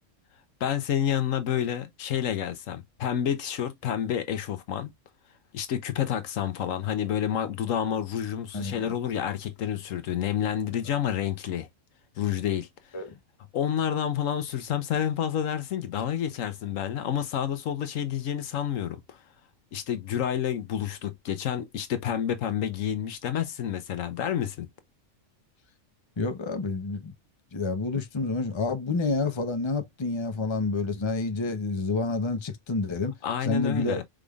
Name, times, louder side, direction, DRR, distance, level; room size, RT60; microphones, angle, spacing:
voice 1, 0.6-4.9 5.5-11.7 12.2-12.7 13.5-19.2 19.7-24.7 33.2-34.0, left 9 dB, 80° left, 1.2 m, -29 dB
voice 2, 8.5-8.9 12.9-13.1 26.2-27.1 27.5-33.1 33.4-34.0, left 3 dB, 25° left, 0.7 m, -29 dB
5.1 x 3.5 x 2.3 m
omnidirectional pair, 1.4 m